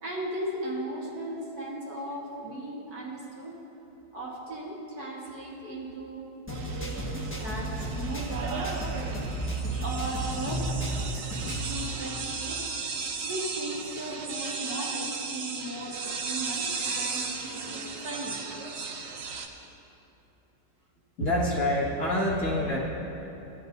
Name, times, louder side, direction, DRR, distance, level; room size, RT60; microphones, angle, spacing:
voice 1, 0.0-3.6 4.1-8.9 9.8-10.7 11.4-12.7 13.2-18.4 21.2-21.5, right 1 dB, 60° right, -4 dB, 2.1 m, -37 dB
sound 1, 6.5-11.8, right 2 dB, 10° left, 1.0 m, -33 dB
sound 2, 6.5-19.5, right 4 dB, 85° right, 1.5 m, -36 dB
voice 2, 21.2-22.8, left 1 dB, 45° left, -7 dB, 2.2 m, -27 dB
17.0 x 11.0 x 2.7 m, 3.0 s
omnidirectional pair, 1.9 m